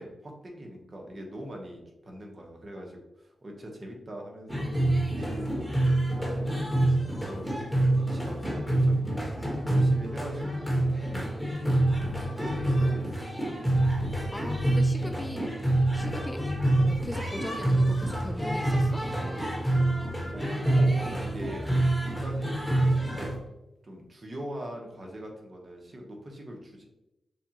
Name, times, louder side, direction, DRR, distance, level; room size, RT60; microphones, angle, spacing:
voice 1, 0.0-4.7 5.0-6.7 7.1-7.6 7.8-9.1 9.7-11.0 11.6-11.8 12.4-13.5 20.3-21.7 22.0-23.3 23.8-26.9, equal, 45° right, 0 dB, 1.2 m, -42 dB
sound 1, 4.5-23.4, right 1 dB, ahead, 1.3 m, -26 dB
voice 2, 13.9-16.4 16.8-19.0, left 1 dB, 15° left, 5 dB, 0.4 m, -39 dB
6.9 x 2.4 x 2.9 m, 0.92 s
cardioid pair, 70°, 0 cm